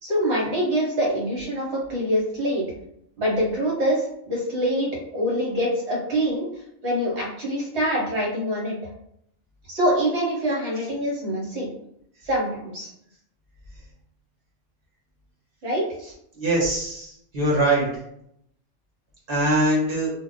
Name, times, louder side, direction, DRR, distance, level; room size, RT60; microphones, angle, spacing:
voice 1, 0.0-2.6 3.2-6.5 6.8-8.8 9.7-11.7 12.2-12.9 15.6-15.8, equal, 60° right, -4 dB, 1.4 m, -25 dB
voice 2, 16.3-17.9 19.3-20.1, right 1 dB, 45° right, -4 dB, 1.5 m, -22 dB
2.7 x 2.2 x 3.9 m, 0.73 s
omnidirectional pair, 1.3 m